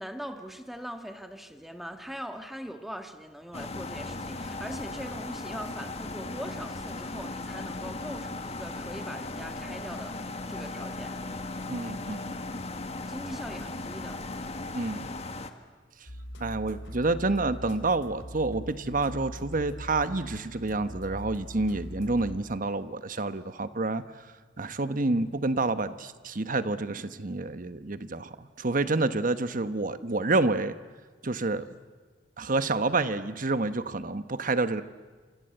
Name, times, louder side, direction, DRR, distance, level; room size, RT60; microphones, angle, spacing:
voice 1, 0.0-11.2 13.1-14.2, equal, ahead, 6 dB, 1.7 m, -41 dB
sound 1, 3.5-15.5, left 2 dB, 35° left, 1.6 m, -37 dB
voice 2, 11.7-12.4 14.7-15.1 16.4-24.0 24.6-30.8 31.2-31.7 32.4-34.8, right 3 dB, 50° right, 12 dB, 1.1 m, -28 dB
sound 2, 16.1-22.9, equal, 90° left, 2.7 m, -42 dB
28.0 x 26.0 x 8.0 m, 1.4 s
head